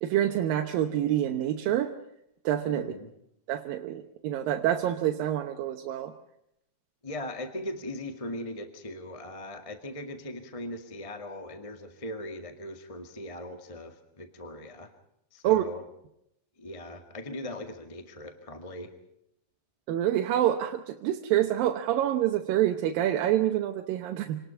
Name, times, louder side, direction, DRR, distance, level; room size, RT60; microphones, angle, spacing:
voice 1, 0.0-1.9 2.4-2.9 3.5-6.1 15.4-15.6 19.9-24.4, right 12 dB, 90° right, 4 dB, 2.8 m, -27 dB
voice 2, 2.7-3.1 7.0-14.9 15.3-15.8 16.6-18.9, left 1 dB, 20° left, 7 dB, 1.0 m, -39 dB
27.0 x 19.5 x 5.7 m, 0.79 s
omnidirectional pair, 3.9 m